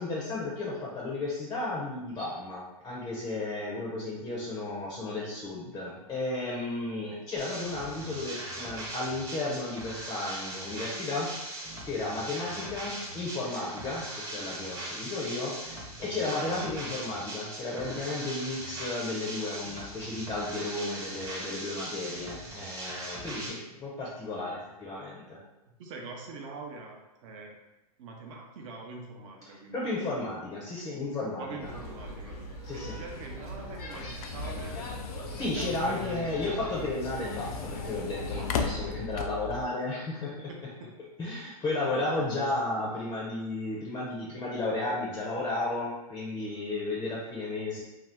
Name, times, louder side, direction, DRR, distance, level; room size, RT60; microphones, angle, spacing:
voice 1, 0.0-11.5 11.9-25.4 29.7-31.7 32.6-33.0 35.4-40.5 41.2-47.8, left 2 dB, 15° left, -4 dB, 0.5 m, -33 dB
sound 1, 7.4-23.5, right 1 dB, 15° right, 0.7 m, -40 dB
voice 2, 25.7-27.6 28.0-29.9 31.4-32.4 32.7-34.8 35.5-36.5 38.6-39.0 40.5-40.9 42.2-42.9, right 3 dB, 55° right, 1 dB, 0.7 m, -44 dB
sound 2, 31.6-38.7, equal, 90° left, 1.0 m, -40 dB
sound 3, 33.1-39.6, left 5 dB, 65° left, 0.4 m, -38 dB
2.7 x 2.3 x 3.3 m, 0.98 s
hypercardioid pair, 130°, 20 cm